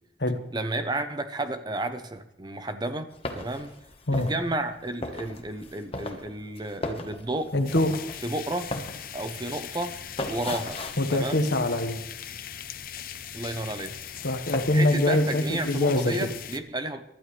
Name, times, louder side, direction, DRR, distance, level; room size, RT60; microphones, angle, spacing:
voice 1, 0.5-3.1 3.3-3.7 4.2-7.5 8.2-8.7 9.1-10.0 10.3-10.8 11.1-11.5 13.3-14.0 14.7-17.0, right 2 dB, 25° right, 9 dB, 0.8 m, -32 dB
sound 1, 3.1-12.3 12.6-13.7 14.0-14.8, left 2 dB, 30° left, 1.3 m, -38 dB
voice 2, 7.5-7.9 11.0-12.0 14.2-16.1, left 1 dB, 75° left, 6 dB, 1.5 m, -24 dB
sound 2, 7.6-16.6, left 9 dB, 50° left, 0.7 m, -40 dB
24.5 x 12.0 x 3.3 m, 0.79 s
head